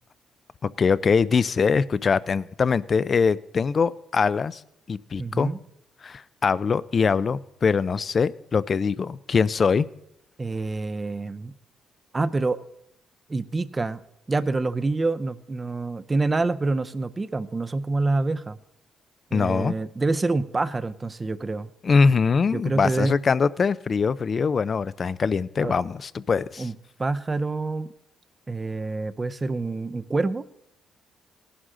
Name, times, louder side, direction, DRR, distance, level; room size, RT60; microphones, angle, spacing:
voice 1, 0.8-4.6 4.9-5.5 6.0-9.9 19.3-19.8 21.8-26.7, left 5 dB, 40° left, 18 dB, 0.4 m, -23 dB
voice 2, 5.2-5.6 10.4-11.5 12.1-12.6 13.3-14.0 14.3-18.6 19.3-21.7 22.5-23.1 25.6-25.7 26.6-26.7 27.0-27.9 28.5-30.4, right 3 dB, 20° right, 13 dB, 0.6 m, -26 dB
18.5 x 11.0 x 3.8 m, 0.80 s
cardioid pair, 115°, 0 cm